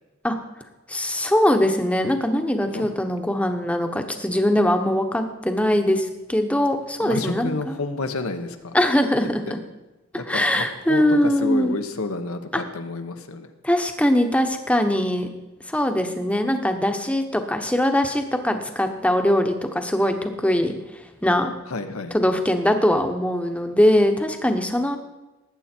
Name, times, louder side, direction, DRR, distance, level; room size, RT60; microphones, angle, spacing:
voice 1, 0.9-7.7 8.7-9.6 10.1-11.7 12.5-12.6 13.6-15.3 15.7-21.5 22.1-25.0, left 1 dB, 5° left, 6 dB, 1.0 m, -22 dB
voice 2, 7.0-8.8 9.2-9.6 10.2-11.0 11.4-13.5 21.7-22.1, left 3 dB, 90° left, 6 dB, 1.2 m, -30 dB
19.0 x 8.5 x 4.5 m, 1.1 s
head